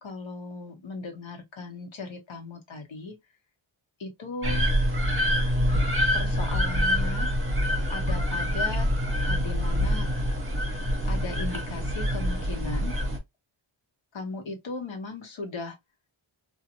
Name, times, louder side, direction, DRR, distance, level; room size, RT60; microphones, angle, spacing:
voice 1, 0.0-3.1 4.0-4.7 6.1-7.3 7.9-8.9 9.3-10.1 11.0-12.9 14.1-15.8, left 3 dB, 65° left, 1.1 m, -37 dB
sound 1, 4.4-13.2, equal, 25° right, 1.3 m, -26 dB
2.5 x 2.4 x 2.8 m
wide cardioid pair, 90°, 49 cm